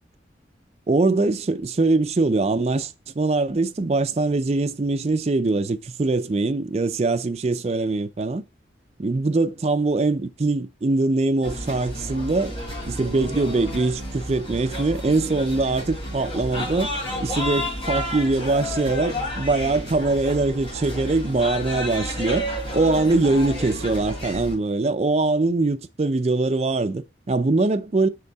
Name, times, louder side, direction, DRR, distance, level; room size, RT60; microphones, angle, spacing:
voice 1, 0.9-8.4 9.0-12.5 12.8-16.9 17.2-22.5 22.7-28.1, right 3 dB, 35° right, 0.4 m, -22 dB
sound 1, 11.4-24.5, equal, 30° left, 4.3 m, -31 dB
6.7 x 5.3 x 3.4 m
head